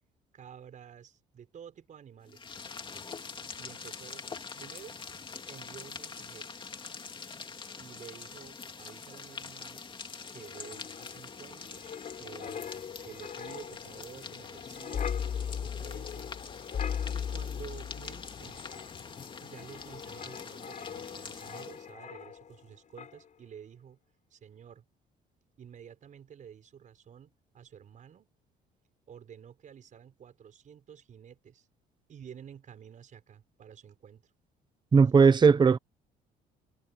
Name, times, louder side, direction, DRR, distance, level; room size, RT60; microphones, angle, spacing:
voice 1, 0.3-2.5 3.6-4.3 4.6-5.0 5.5-6.5 7.7-9.9 10.3-12.6 13.0-16.3 17.1-18.8 19.4-24.0 24.3-24.9 25.6-28.3 29.1-31.7 32.1-34.3, right 8 dB, 50° right, 5.6 m, -51 dB
sound 1, 2.3-21.9, left 5 dB, 30° left, 2.8 m, -45 dB
Wind, 10.3-22.7 23.0-23.2, left 8 dB, 45° left, 7.8 m, -39 dB
voice 2, 34.9-35.8, right 5 dB, 25° right, 0.9 m, -18 dB
cardioid pair, 110°, 17 cm